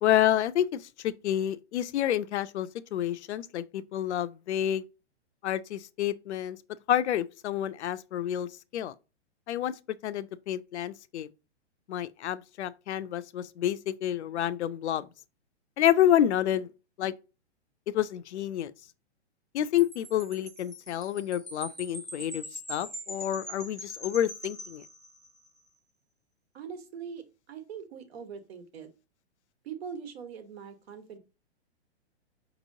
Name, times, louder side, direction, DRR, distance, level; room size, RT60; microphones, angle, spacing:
voice 1, 0.0-4.8 5.4-6.6 6.9-8.9 9.5-9.7 10.0-11.3 11.9-15.1 15.8-16.7 17.0-17.1 17.9-18.7 19.5-24.8, left 11 dB, 80° left, 0.5 m, -29 dB
Wind chime, 19.8-25.5, equal, ahead, 0.9 m, -43 dB
voice 2, 26.5-28.9 29.6-31.2, right 7 dB, 65° right, 1.3 m, -42 dB
5.2 x 3.0 x 2.6 m
hypercardioid pair, 150°, 34 cm